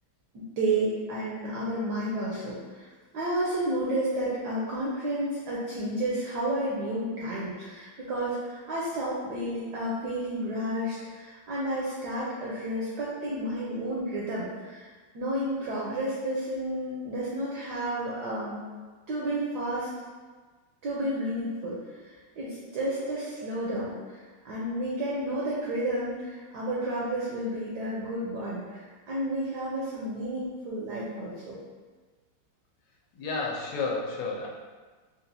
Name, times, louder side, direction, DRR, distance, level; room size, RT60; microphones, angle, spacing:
voice 1, 0.3-2.9 3.1-14.9 15.1-18.6 19.1-19.9 20.8-21.8 22.0-31.6, right 1 dB, 75° right, -7 dB, 0.9 m, -31 dB
voice 2, 33.1-34.5, left 3 dB, 90° left, -1 dB, 1.6 m, -31 dB
4.2 x 2.3 x 2.6 m, 1.4 s
omnidirectional pair, 2.4 m